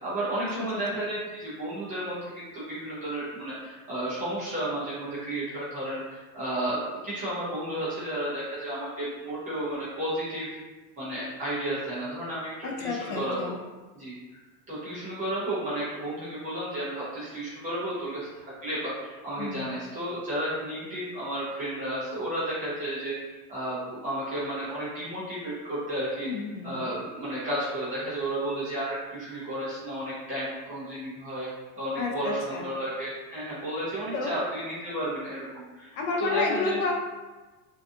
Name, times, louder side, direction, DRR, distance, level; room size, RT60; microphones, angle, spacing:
voice 1, 0.0-10.5 11.0-13.5 13.9-14.2 14.7-23.1 23.5-26.3 26.6-31.5 31.7-35.9 36.2-36.8, right 1 dB, 15° right, -10 dB, 0.5 m, -32 dB
voice 2, 12.6-13.6 19.4-19.7 26.2-26.9 32.0-32.7 34.1-34.3 35.9-36.9, left 4 dB, 50° left, 0 dB, 0.5 m, -30 dB
2.6 x 2.3 x 2.5 m, 1.2 s
supercardioid pair, 160°, 47 cm